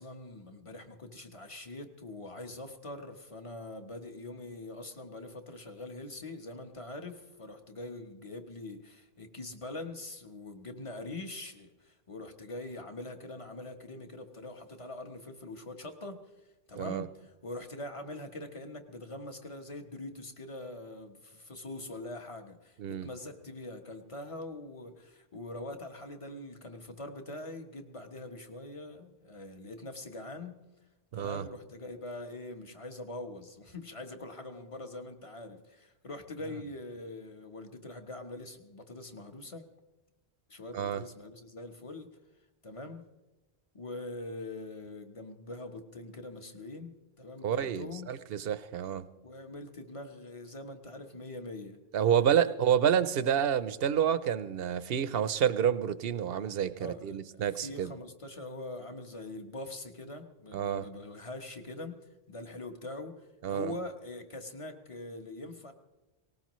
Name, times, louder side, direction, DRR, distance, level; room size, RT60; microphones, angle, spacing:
voice 1, 0.0-30.6 31.1-39.7 40.5-42.1 42.6-43.0 43.7-48.2 49.2-51.8 52.2-52.5 56.8-65.7, left 2 dB, 30° left, 6 dB, 1.1 m, -43 dB
voice 2, 16.8-17.1 22.8-23.1 31.1-31.4 40.7-41.0 47.4-49.0 51.9-57.9 60.5-60.9 63.4-63.7, right 9 dB, 70° right, 14 dB, 0.8 m, -29 dB
19.0 x 18.5 x 3.1 m, 1.1 s
omnidirectional pair, 1.1 m